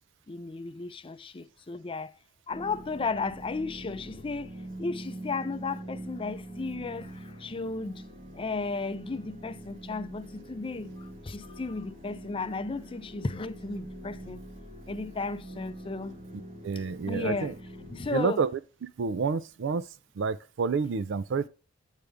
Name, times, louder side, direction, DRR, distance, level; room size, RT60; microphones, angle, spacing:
voice 1, 0.3-2.1 2.5-4.5 4.8-8.0 8.3-14.4 14.9-16.2 16.8-17.5 17.8-18.4, left 3 dB, 25° left, 0.5 m, -34 dB
sound 1, 2.5-18.1, right 1 dB, 40° right, 1.8 m, -44 dB
voice 2, 16.6-17.5 18.1-18.5 19.0-19.8 20.2-21.5, right 5 dB, 65° right, 0.4 m, -29 dB
8.2 x 5.1 x 3.4 m
head